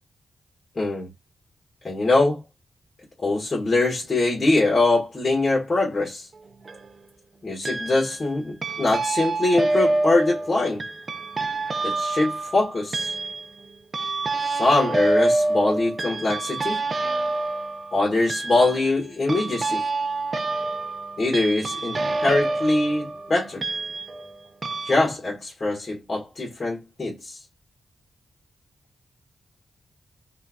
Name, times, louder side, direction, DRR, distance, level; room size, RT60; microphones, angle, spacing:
voice 1, 0.7-1.1 1.8-2.4 3.2-6.3 7.4-10.8 11.8-13.1 14.5-16.8 17.9-19.8 21.2-23.6 24.8-27.4, left 2 dB, 40° left, 1.5 m, -23 dB
sound 1, 6.3-6.9 7.6-8.3 8.6-24.3 24.6-24.9, right 2 dB, 45° right, 0.4 m, -27 dB
3.0 x 2.6 x 2.3 m
cardioid pair, 70°, 0 cm